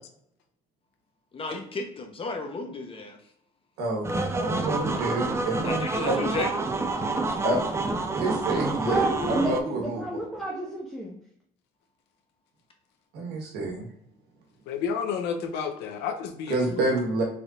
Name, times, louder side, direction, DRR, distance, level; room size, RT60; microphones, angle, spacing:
voice 1, 1.3-3.2 5.6-6.5, left 3 dB, 35° left, 4 dB, 0.7 m, -33 dB
voice 2, 3.8-6.3 7.4-7.6 8.1-9.0 9.3-10.0 13.1-13.9 16.5-17.2, right 2 dB, 75° right, 0 dB, 1.2 m, -28 dB
sound 1, 4.0-9.6, right 3 dB, 15° right, 0.4 m, -28 dB
voice 3, 8.9-11.1, right 1 dB, ahead, -4 dB, 0.8 m, -29 dB
voice 4, 14.7-16.9, left 6 dB, 85° left, 6 dB, 0.6 m, -31 dB
3.9 x 3.4 x 2.4 m, 0.72 s
cardioid pair, 110°, 17 cm